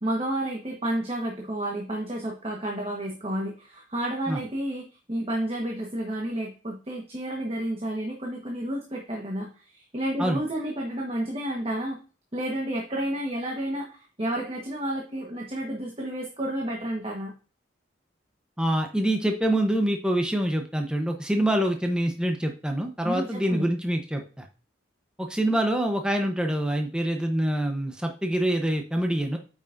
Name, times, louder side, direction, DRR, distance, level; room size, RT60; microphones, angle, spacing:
voice 1, 0.0-4.8 5.1-12.0 12.3-17.3 23.0-23.7, right 1 dB, 30° right, 0 dB, 1.3 m, -31 dB
voice 2, 18.6-24.5 25.2-29.4, right 1 dB, 5° right, 3 dB, 0.8 m, -25 dB
8.8 x 6.1 x 2.6 m, 0.35 s
head